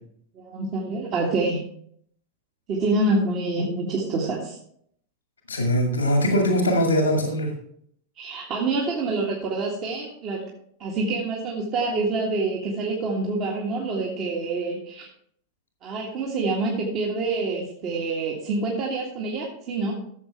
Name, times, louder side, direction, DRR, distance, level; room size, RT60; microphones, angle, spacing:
voice 1, 0.4-1.6 2.7-4.6 8.2-10.4 10.8-15.1 15.8-19.9, right 3 dB, 35° right, -2 dB, 1.8 m, -26 dB
voice 2, 5.5-7.5, equal, 80° left, 3 dB, 1.7 m, -21 dB
13.5 x 7.4 x 3.4 m, 0.67 s
figure-of-eight pair, 90°, 0 cm